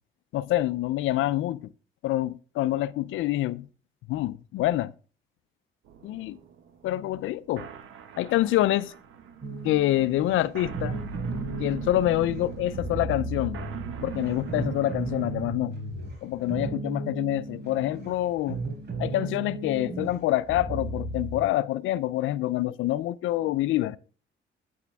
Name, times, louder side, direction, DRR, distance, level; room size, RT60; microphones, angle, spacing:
voice 1, 0.3-1.7 2.0-3.7 4.1-4.9 6.0-6.4 6.8-7.7 8.2-8.9 9.6-11.0 11.6-13.6 14.0-15.8 16.2-18.6 19.0-24.0, left 14 dB, 85° left, 0.5 m, -26 dB
sound 1, 5.9-15.5, right 5 dB, 80° right, 1.4 m, -40 dB
sound 2, 9.4-21.4, right 2 dB, 60° right, 4.2 m, -35 dB
9.2 x 8.4 x 3.4 m
cardioid pair, 90°, 20 cm